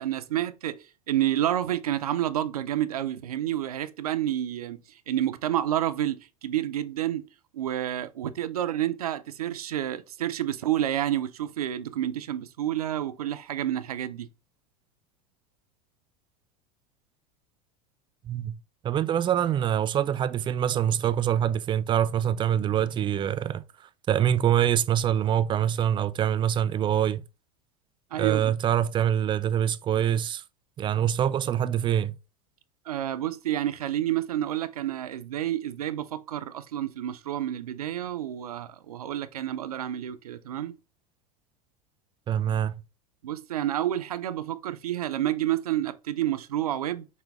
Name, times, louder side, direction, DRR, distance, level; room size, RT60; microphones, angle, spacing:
voice 1, 0.0-4.8 5.1-7.3 7.5-14.3 28.1-28.5 32.9-40.8 43.2-47.1, right 12 dB, 90° right, 0.5 m, -29 dB
voice 2, 18.2-18.6 18.8-23.6 24.1-27.2 28.2-30.4 30.8-32.2 42.3-42.7, right 10 dB, 25° right, 0.3 m, -25 dB
6.1 x 2.2 x 3.5 m
hypercardioid pair, 90°, 19 cm